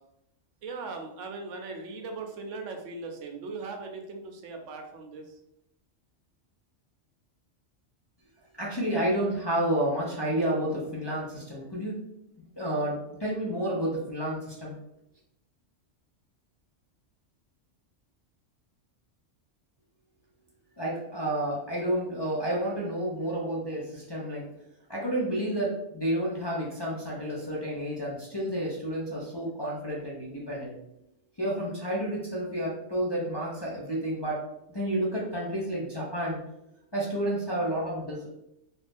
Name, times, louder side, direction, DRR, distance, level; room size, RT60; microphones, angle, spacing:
voice 1, 0.6-5.4, right 3 dB, 85° right, 4 dB, 1.0 m, -39 dB
voice 2, 8.6-12.0 12.6-14.7 20.8-24.4 24.9-30.8 31.4-34.4 34.7-36.4 36.9-38.3, right 1 dB, 30° left, -6 dB, 0.5 m, -30 dB
2.8 x 2.5 x 3.4 m, 0.81 s
omnidirectional pair, 1.3 m